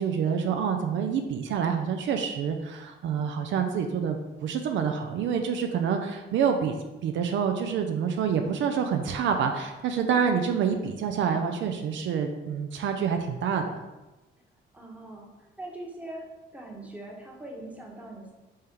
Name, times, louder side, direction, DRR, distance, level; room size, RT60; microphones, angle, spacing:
voice 1, 0.0-13.6, right 7 dB, 75° right, 5 dB, 0.5 m, -27 dB
voice 2, 14.7-16.3 16.5-18.3, right 1 dB, 5° right, -1 dB, 1.0 m, -41 dB
4.2 x 3.4 x 3.6 m, 1.1 s
cardioid pair, 90°, 20 cm